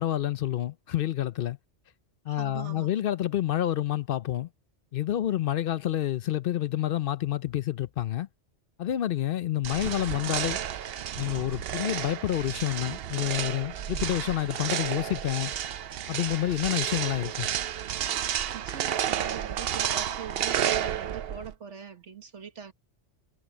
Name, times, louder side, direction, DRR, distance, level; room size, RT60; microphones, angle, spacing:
voice 1, 0.0-1.6 2.3-4.5 4.9-8.3 8.8-10.6 11.2-15.5 16.1-17.5, left 12 dB, 60° left, 0.7 m, -28 dB
voice 2, 2.3-2.9 18.5-22.7, right 7 dB, 75° right, 1.6 m, -42 dB
sound 1, 9.6-21.5, right 10 dB, 60° right, 0.8 m, -31 dB
omnidirectional pair, 1.2 m